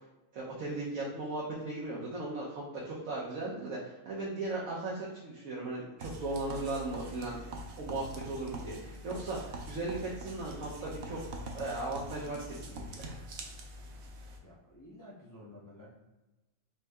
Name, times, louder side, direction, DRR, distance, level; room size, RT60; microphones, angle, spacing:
voice 1, 0.3-7.4 7.8-13.2, right 2 dB, 80° right, -5 dB, 1.2 m, -37 dB
sound 1, 6.0-14.4, right 1 dB, 60° right, 0.9 m, -44 dB
voice 2, 14.4-15.9, left 1 dB, 20° left, -5 dB, 0.5 m, -52 dB
4.3 x 2.6 x 3.4 m, 1.0 s
omnidirectional pair, 1.4 m